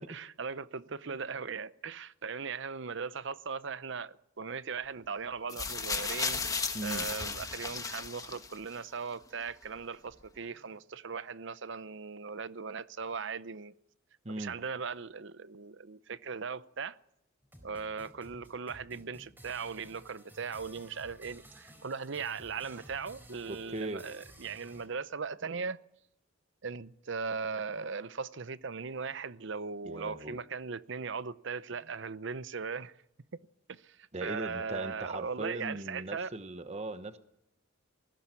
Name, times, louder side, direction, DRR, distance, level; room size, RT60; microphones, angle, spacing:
voice 1, 0.0-13.7 14.4-17.0 17.6-25.8 26.6-32.9 33.7-36.3, right 5 dB, 60° right, 0.7 m, -39 dB
sound 1, 5.5-8.7 9.6-9.7, left 4 dB, 15° left, 1.3 m, -35 dB
voice 2, 6.7-7.1 14.2-14.5 23.5-24.0 29.8-30.4 34.1-37.2, right 2 dB, 35° right, 1.1 m, -39 dB
sound 2, 17.4-24.9, right 1 dB, 10° right, 4.2 m, -55 dB
20.0 x 16.5 x 8.3 m
head